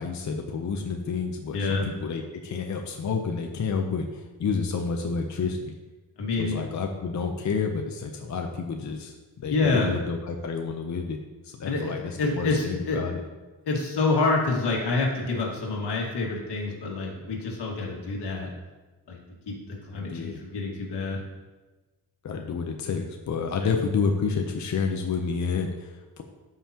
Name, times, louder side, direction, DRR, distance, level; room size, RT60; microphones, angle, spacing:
voice 1, 0.0-5.7 6.4-11.2 11.4-13.2 19.9-20.4 22.2-26.2, left 5 dB, 45° left, 3 dB, 0.7 m, -30 dB
voice 2, 1.5-1.9 6.2-6.6 9.4-9.9 11.7-13.0 13.6-18.5 19.1-19.2 19.5-21.2 23.6-23.7, left 3 dB, 90° left, -1 dB, 2.0 m, -27 dB
13.5 x 5.6 x 2.9 m, 1.2 s
wide cardioid pair, 150°, 39 cm